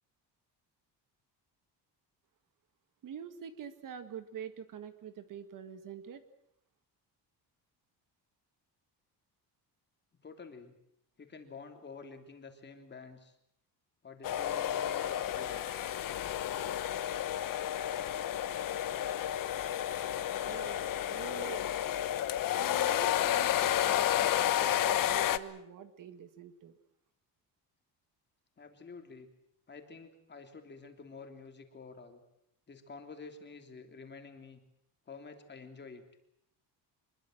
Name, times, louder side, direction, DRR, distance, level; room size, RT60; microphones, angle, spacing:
voice 1, 3.0-6.2 20.4-20.8 21.1-22.0 22.6-26.8, right 8 dB, 50° right, 10 dB, 1.8 m, -46 dB
voice 2, 10.2-10.7 11.2-13.3 14.0-15.6 28.6-29.3 29.7-32.2 32.7-34.6 35.1-36.0, left 4 dB, 25° left, 5 dB, 3.2 m, -49 dB
sound 1, 14.2-25.4, left 11 dB, 55° left, 1.1 m, -31 dB
25.5 x 22.0 x 7.9 m, 0.76 s
cardioid pair, 170°, 40 cm